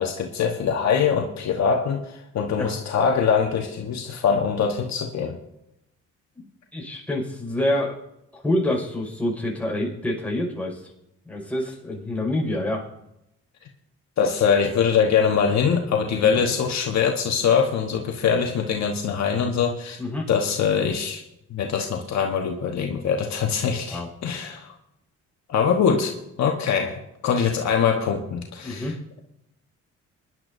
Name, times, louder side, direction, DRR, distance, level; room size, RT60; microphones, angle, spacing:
voice 1, 0.0-5.4 14.2-20.0 20.3-21.2 21.5-24.7 25.5-26.1 26.4-28.9, left 6 dB, 65° left, 2 dB, 1.2 m, -23 dB
voice 2, 6.7-8.0 8.3-10.8 11.3-12.8 16.2-16.4 20.0-20.3 23.7-24.1 28.6-29.0, left 1 dB, 5° left, -2 dB, 5.3 m, -27 dB
24.0 x 11.0 x 2.7 m, 0.85 s
cardioid pair, 90°, 30 cm